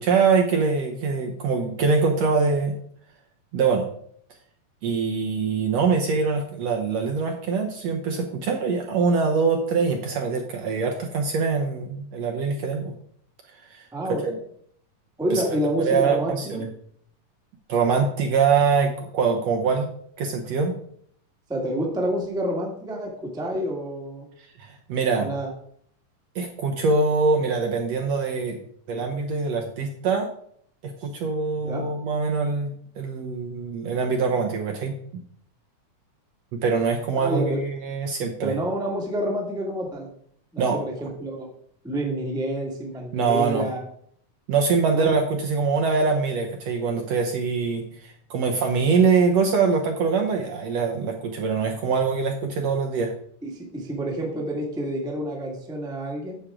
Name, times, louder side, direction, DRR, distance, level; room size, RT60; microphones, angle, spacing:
voice 1, 0.0-2.8 3.5-3.8 4.8-12.9 13.6-13.8 14.2-14.3 15.3-16.7 17.7-19.9 20.2-20.7 24.6-25.3 26.3-28.6 28.9-30.3 30.8-34.9 36.5-38.5 40.6-40.8 43.1-43.7 44.5-53.1, right 5 dB, 70° right, 2 dB, 1.7 m, -23 dB
voice 2, 13.9-14.4 15.2-16.6 21.5-24.2 25.2-25.5 31.6-31.9 37.2-37.6 38.4-40.1 40.5-41.5 41.8-43.9 44.9-45.1 53.4-56.4, right 1 dB, ahead, -1 dB, 0.9 m, -28 dB
9.9 x 7.2 x 3.7 m, 0.63 s
omnidirectional pair, 3.7 m